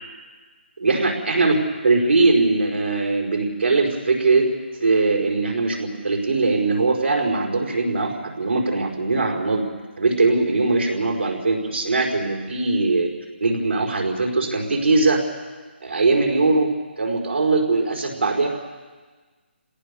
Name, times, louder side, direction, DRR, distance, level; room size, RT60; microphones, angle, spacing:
voice 1, 0.8-1.6 1.8-4.5 4.8-9.6 10.0-13.1 13.4-15.2 15.8-18.5, right 3 dB, 85° right, 1 dB, 4.9 m, -21 dB
27.0 x 17.5 x 7.1 m, 1.4 s
hypercardioid pair, 160°, 6 cm